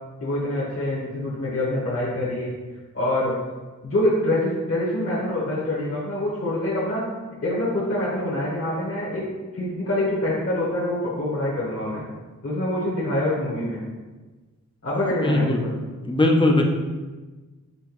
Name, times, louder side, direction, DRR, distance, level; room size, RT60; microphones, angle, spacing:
voice 1, 0.2-2.5 2.9-3.3 3.8-7.0 7.4-9.2 9.5-12.0 12.4-13.8 14.8-15.7, left 1 dB, 45° left, -7 dB, 1.2 m, -25 dB
voice 2, 15.2-15.6 16.0-16.6, left 2 dB, 15° left, 2 dB, 0.6 m, -19 dB
5.6 x 3.0 x 3.0 m, 1.3 s
wide cardioid pair, 95°, 33 cm